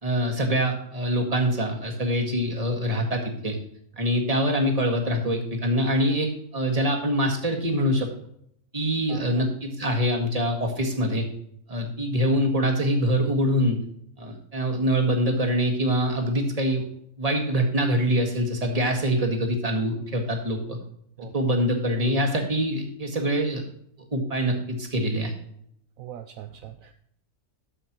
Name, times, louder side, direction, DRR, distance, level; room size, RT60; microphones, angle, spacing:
voice 1, 0.0-3.6 4.0-8.1 8.7-11.2 11.7-13.8 14.2-16.8 17.2-20.8 21.2-23.6 24.1-25.3, equal, 25° right, 2 dB, 1.8 m, -24 dB
voice 2, 9.1-9.4 21.2-21.3 26.0-26.9, right 10 dB, 70° right, 7 dB, 1.0 m, -41 dB
12.5 x 7.7 x 3.0 m, 0.69 s
omnidirectional pair, 1.6 m